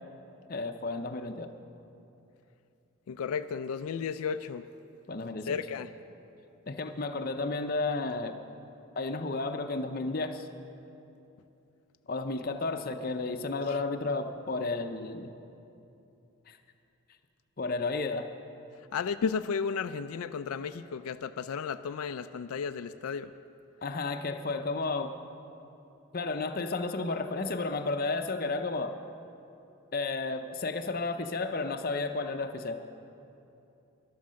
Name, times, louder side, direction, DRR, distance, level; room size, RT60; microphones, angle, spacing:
voice 1, 0.5-1.5 5.1-5.6 6.7-8.4 9.0-10.5 12.1-15.3 16.5-16.6 17.6-18.3 23.8-25.1 26.1-28.9 29.9-32.8, left 3 dB, 40° left, 7 dB, 0.6 m, -32 dB
voice 2, 3.1-4.6 5.5-5.9 13.7-13.8 18.9-23.3, left 6 dB, 85° left, 10 dB, 0.4 m, -33 dB
13.0 x 11.5 x 6.3 m, 2.8 s
head